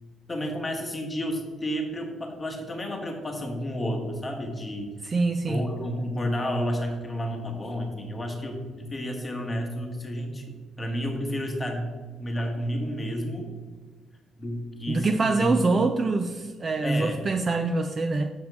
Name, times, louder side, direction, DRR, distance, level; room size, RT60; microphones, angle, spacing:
voice 1, 0.3-4.9 5.4-11.9 12.2-13.6 14.4-15.9 16.8-17.2, equal, 15° left, 2 dB, 1.2 m, -31 dB
voice 2, 5.0-5.6 14.9-18.3, right 3 dB, 25° right, 7 dB, 0.4 m, -25 dB
7.3 x 7.0 x 4.7 m, 1.4 s
cardioid pair, 175°, 0 cm